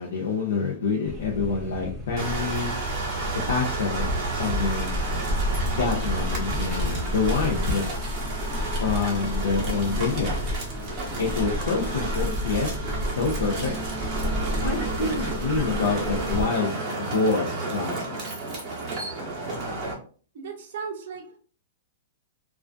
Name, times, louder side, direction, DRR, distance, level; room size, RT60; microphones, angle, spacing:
voice 1, 0.0-2.8 3.5-4.1 4.4-4.9 5.7-7.9 8.8-10.4 11.2-12.7 13.1-13.7 14.6-18.2, left 4 dB, 85° left, 0.6 m, -27 dB
sound 1, 1.0-16.4, equal, 5° right, 0.4 m, -30 dB
sound 2, 2.2-19.9, right 3 dB, 20° right, 0.7 m, -32 dB
sound 3, 6.2-14.8, equal, 35° left, 0.8 m, -53 dB
voice 2, 20.3-21.4, right 5 dB, 50° right, 0.6 m, -36 dB
2.5 x 2.3 x 2.2 m
hypercardioid pair, 170°, 0 cm